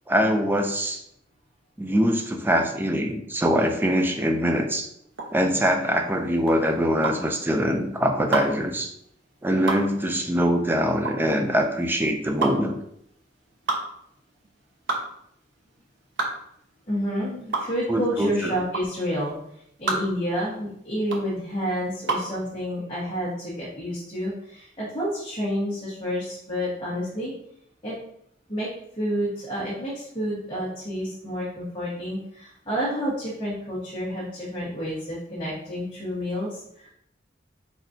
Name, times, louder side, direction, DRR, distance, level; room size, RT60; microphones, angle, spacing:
voice 1, 0.1-1.0 1.8-4.9 5.3-8.9 9.4-12.8 17.9-18.6, equal, 10° right, 4 dB, 0.4 m, -23 dB
sound 1, 5.1-22.4, right 3 dB, 80° right, 0.9 m, -31 dB
voice 2, 16.9-19.4 19.8-27.3 27.8-27.9 28.5-36.9, equal, 25° left, -8 dB, 1.3 m, -29 dB
4.7 x 4.1 x 2.7 m, 0.72 s
head